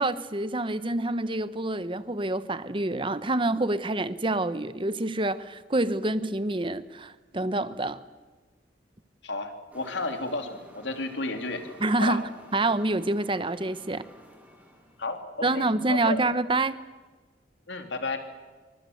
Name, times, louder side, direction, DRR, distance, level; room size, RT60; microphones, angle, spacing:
voice 1, 0.0-8.0 11.8-12.2 12.5-14.1 15.4-16.8, right 2 dB, 30° right, 1.1 m, -27 dB
voice 2, 9.2-12.2 15.0-16.2 17.7-18.2, left 2 dB, 85° left, 3.1 m, -33 dB
sound 1, 9.7-15.2, equal, 10° right, 4.4 m, -52 dB
27.0 x 24.5 x 8.0 m
head